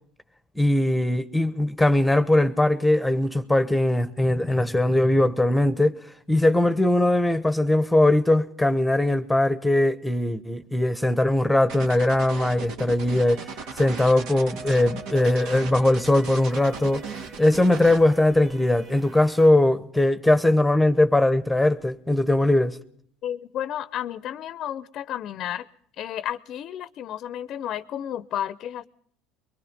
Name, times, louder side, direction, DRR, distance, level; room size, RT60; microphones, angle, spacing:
voice 1, 0.5-6.0 6.3-22.8, left 1 dB, 5° left, 1.2 m, -20 dB
sound 1, 11.7-18.0, right 5 dB, 70° right, 2.1 m, -37 dB
sound 2, 13.2-19.5, right 4 dB, 45° right, 2.3 m, -44 dB
voice 2, 23.2-25.7 26.0-28.8, left 11 dB, 50° left, 0.8 m, -32 dB
23.0 x 22.0 x 5.3 m
supercardioid pair, 95°, 0 cm